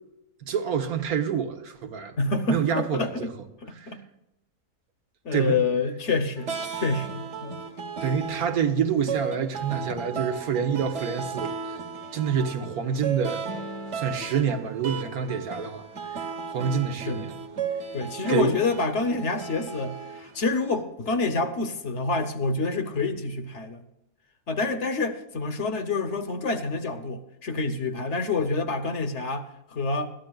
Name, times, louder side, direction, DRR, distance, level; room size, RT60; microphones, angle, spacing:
voice 1, 0.4-2.2 2.5-3.3 3.7-3.9 5.3-5.6 8.0-11.8 12.1-13.4 13.9-16.2 16.5-17.3 18.3-18.5, right 7 dB, 85° right, 1.6 m, -27 dB
voice 2, 2.2-3.3 3.6-4.0 5.2-7.6 17.1-17.3 17.9-23.8 24.5-30.1, left 3 dB, 55° left, 1.2 m, -27 dB
sound 1, 6.4-20.8, right 5 dB, 55° right, 1.4 m, -35 dB
21.0 x 13.0 x 2.3 m
omnidirectional pair, 1.5 m